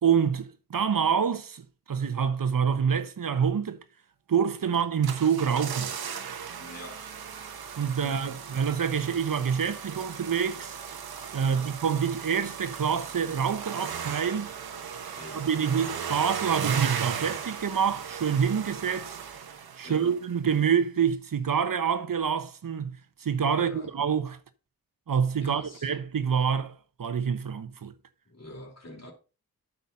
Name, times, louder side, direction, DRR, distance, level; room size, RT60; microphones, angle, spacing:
voice 1, 0.0-3.8 4.3-5.9 7.8-10.8 11.3-14.5 15.3-19.2 19.8-22.9 23.2-24.4 25.1-27.9, right 7 dB, 65° right, 1.1 m, -27 dB
sound 1, 4.7-20.2 20.5-20.6, right 7 dB, 90° right, 1.2 m, -36 dB
voice 2, 6.6-7.0 8.0-8.4 11.4-11.7 15.2-15.5 19.8-20.2 23.5-24.0 25.4-25.9 28.3-29.1, equal, 45° left, 4.1 m, -45 dB
8.7 x 5.6 x 5.4 m
cardioid pair, 45°, 36 cm